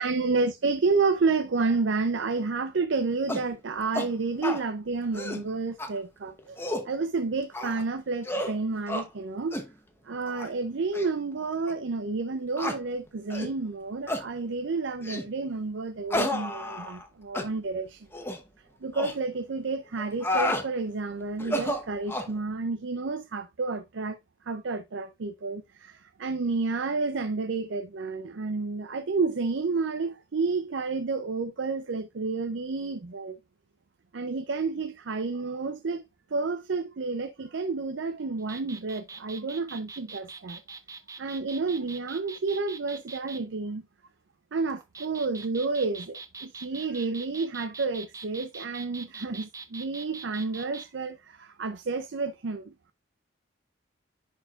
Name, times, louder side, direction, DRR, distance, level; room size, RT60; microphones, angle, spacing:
voice 1, 0.0-6.6 6.8-9.6 10.0-18.1 18.8-24.2 24.5-33.4 34.1-36.0 36.3-40.6 41.2-43.8 44.5-52.7, right 4 dB, 65° right, 0.5 m, -30 dB
sound 1, 3.3-3.5 3.9-4.1 4.4-4.6 5.0-5.4 5.8-5.9 6.4-6.9 7.5-7.8 8.2-8.5 8.9-9.1 9.5-9.7 10.3-10.5 10.9-11.1 11.7-11.8 12.6-12.8 13.3-13.5 14.1-14.3 15.0-15.3 16.1-17.1 17.3-17.5 18.1-18.4 18.9-19.1 20.0-20.7 21.4-22.3, left 1 dB, 10° left, 0.8 m, -31 dB
sound 2, 38.4-43.4 44.7-50.9, right 4 dB, 15° right, 0.5 m, -43 dB
10.0 x 4.5 x 2.4 m
head